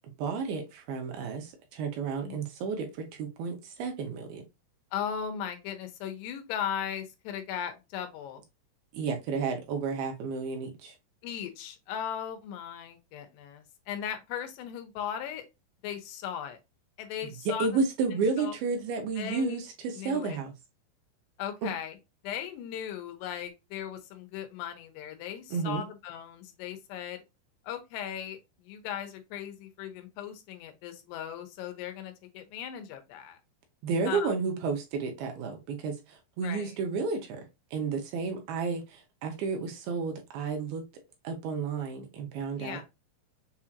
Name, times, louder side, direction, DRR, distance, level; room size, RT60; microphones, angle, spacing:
voice 1, 0.2-4.4 8.9-10.9 17.5-20.5 21.6-21.7 25.5-25.8 33.8-37.4 37.7-40.8 41.2-42.9, right 4 dB, 75° right, 2.6 m, -32 dB
voice 2, 4.9-8.4 11.2-15.4 15.8-16.6 17.0-17.7 18.1-18.5 19.2-19.6 19.9-20.4 21.4-22.0 22.2-27.2 27.6-33.4 34.1-34.3 36.4-36.7 42.6-42.9, left 9 dB, 90° left, 2.9 m, -37 dB
7.1 x 2.8 x 2.4 m
omnidirectional pair, 4.8 m